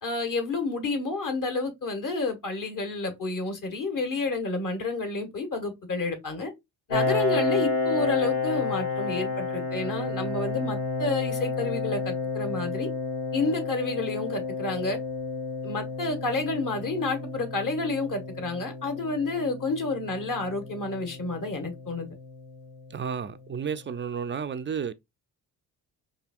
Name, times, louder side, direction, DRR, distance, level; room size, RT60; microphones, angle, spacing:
voice 1, 0.0-6.5 6.9-12.9 13.3-15.0 15.6-22.1, left 3 dB, 40° left, 1.7 m, -30 dB
Piano, 6.9-22.3, left 3 dB, 80° left, 1.4 m, -31 dB
voice 2, 22.9-24.9, right 7 dB, 25° right, 0.4 m, -32 dB
4.8 x 2.8 x 2.4 m
hypercardioid pair, 45°, 49 cm